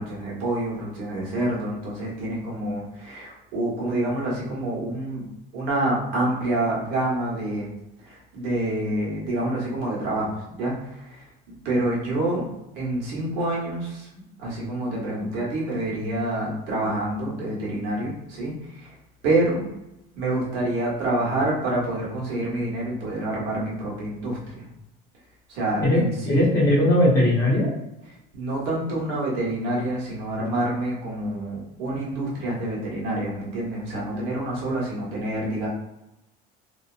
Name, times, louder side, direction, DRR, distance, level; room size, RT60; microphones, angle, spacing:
voice 1, 0.0-5.3 5.5-7.7 8.0-12.5 12.7-14.1 14.4-18.9 19.2-19.7 20.2-24.7 25.5-26.5 28.3-35.7, right 1 dB, 60° right, -5 dB, 1.0 m, -27 dB
voice 2, 26.3-27.7, left 1 dB, 15° left, -7 dB, 0.7 m, -19 dB
2.7 x 2.1 x 2.4 m, 0.90 s
cardioid pair, 175°, 19 cm